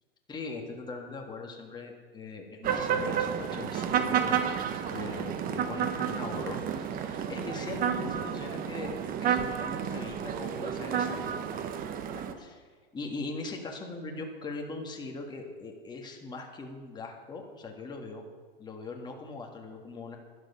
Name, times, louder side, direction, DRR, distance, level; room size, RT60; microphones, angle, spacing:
voice 1, 0.3-11.4 12.1-12.6 12.9-18.2 18.6-20.2, left 3 dB, 15° left, 1 dB, 1.7 m, -40 dB
sound 1, 2.6-12.3, right 8 dB, 30° right, 1.0 m, -31 dB
12.0 x 11.0 x 5.7 m, 1.5 s
hypercardioid pair, 130°, 29 cm